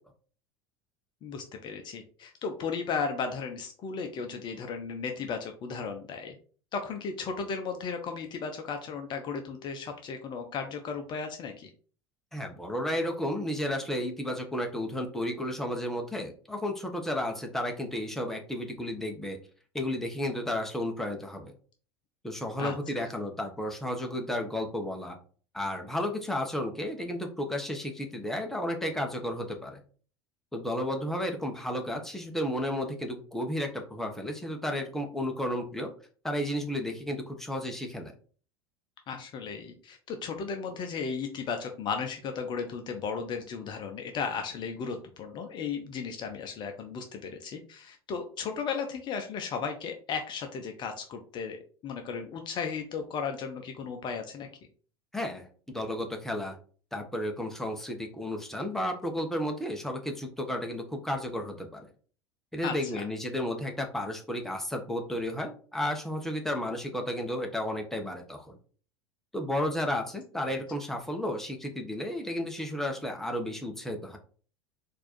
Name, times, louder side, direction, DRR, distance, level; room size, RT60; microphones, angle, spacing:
voice 1, 1.2-6.3 6.7-11.7 22.6-23.0 39.1-54.5 62.6-63.0, left 5 dB, 35° left, 5 dB, 0.7 m, -35 dB
voice 2, 12.3-19.4 19.7-21.5 22.2-25.2 25.5-29.8 30.5-35.9 36.2-38.1 55.1-56.6 56.9-61.9 62.5-68.6 69.3-74.2, left 1 dB, 5° left, 3 dB, 0.9 m, -33 dB
4.3 x 2.7 x 4.2 m, 0.41 s
figure-of-eight pair, 75°, 14 cm